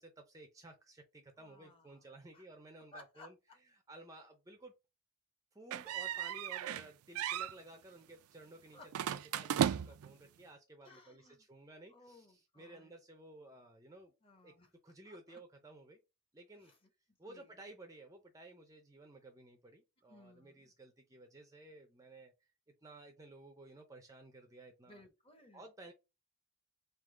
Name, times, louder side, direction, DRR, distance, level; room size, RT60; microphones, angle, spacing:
voice 1, 0.0-3.3 3.9-4.7 5.5-8.8 9.4-14.1 14.4-14.5 14.8-16.0 16.3-16.7 17.2-22.3 22.8-25.0 25.5-25.9, right 2 dB, 15° right, 0.5 m, -55 dB
voice 2, 1.4-2.1 2.3-2.5 2.9-3.3 6.1-6.2 8.7-9.7 10.8-11.5 11.9-13.0 14.2-14.7 15.0-15.4 16.6-16.9 17.2-17.6 20.1-20.7 24.9-25.7, left 2 dB, 25° left, 0.8 m, -59 dB
sound 1, 5.7-6.9 7.2-7.5 8.9-10.1, right 9 dB, 75° right, 0.3 m, -35 dB
3.7 x 2.7 x 3.7 m
head